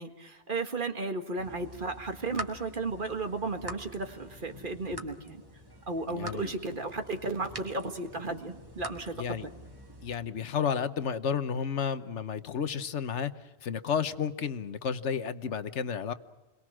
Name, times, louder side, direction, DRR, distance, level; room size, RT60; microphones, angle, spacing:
voice 1, 0.0-5.4 5.9-9.5, right 3 dB, 45° right, 6 dB, 1.9 m, -34 dB
sound 1, 1.4-10.1, equal, 20° right, 1.7 m, -46 dB
voice 2, 6.1-6.5 9.1-9.5 10.0-13.3 13.6-16.1, left 7 dB, 85° left, 12 dB, 1.3 m, -32 dB
28.5 x 22.5 x 6.2 m, 1.1 s
omnidirectional pair, 1.2 m